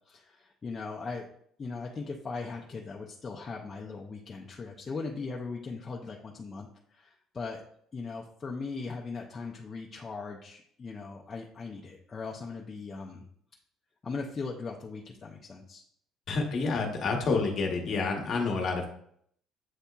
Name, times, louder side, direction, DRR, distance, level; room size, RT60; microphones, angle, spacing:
voice 1, 0.1-1.3 1.6-7.6 7.9-13.2 14.0-15.8, left 4 dB, 20° left, -1 dB, 0.4 m, -39 dB
voice 2, 16.3-18.9, left 4 dB, 40° left, 3 dB, 0.9 m, -29 dB
7.9 x 2.7 x 2.2 m, 0.66 s
cardioid pair, 175°, 0 cm